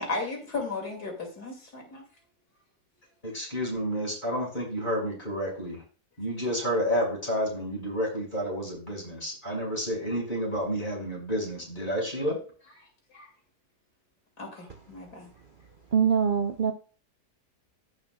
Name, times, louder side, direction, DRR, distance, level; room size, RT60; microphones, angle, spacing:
voice 1, 0.0-2.0 13.1-13.3 14.4-15.3, left 3 dB, 70° left, 2 dB, 3.1 m, -35 dB
voice 2, 3.2-5.8 6.2-12.4, equal, 30° left, -2 dB, 5.9 m, -30 dB
voice 3, 15.9-16.7, right 7 dB, 45° right, 5 dB, 0.7 m, -23 dB
16.0 x 6.9 x 2.4 m, 0.37 s
omnidirectional pair, 1.8 m